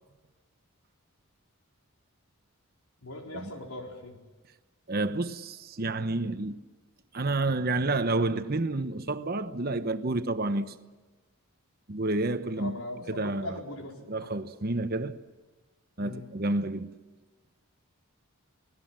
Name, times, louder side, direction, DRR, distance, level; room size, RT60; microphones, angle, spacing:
voice 1, 3.0-4.2 12.6-13.9 16.0-16.3, left 1 dB, 75° left, 4.4 m, -40 dB
voice 2, 4.9-6.6 7.1-10.7 11.9-12.8 13.1-13.6 14.1-15.2 16.0-16.9, right 2 dB, 45° right, 1.0 m, -29 dB
29.0 x 19.0 x 7.6 m
head